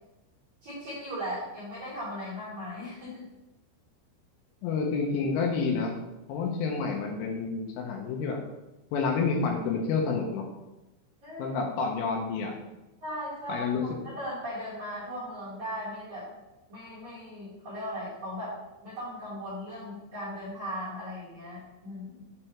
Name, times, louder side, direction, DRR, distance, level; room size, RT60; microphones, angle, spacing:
voice 1, 0.6-3.3 11.2-11.6 13.0-16.3 16.7-18.6 18.8-22.2, equal, 65° right, -8 dB, 1.9 m, -38 dB
voice 2, 4.6-6.0 6.3-8.4 8.9-10.5 11.4-12.5 13.5-14.0, left 4 dB, 80° left, 1 dB, 3.3 m, -29 dB
8.0 x 3.4 x 4.4 m, 1.0 s
omnidirectional pair, 5.8 m